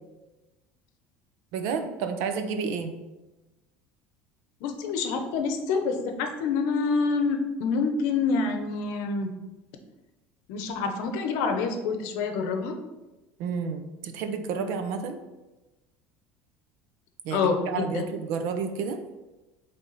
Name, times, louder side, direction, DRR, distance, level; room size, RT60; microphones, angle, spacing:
voice 1, 1.5-2.9 13.4-15.2 17.2-19.0, right 5 dB, 60° right, 8 dB, 0.7 m, -30 dB
voice 2, 4.6-9.3 10.5-12.8 17.3-18.0, left 4 dB, 60° left, 5 dB, 0.8 m, -27 dB
8.4 x 3.4 x 4.0 m, 1.1 s
cardioid pair, 175°, 5 cm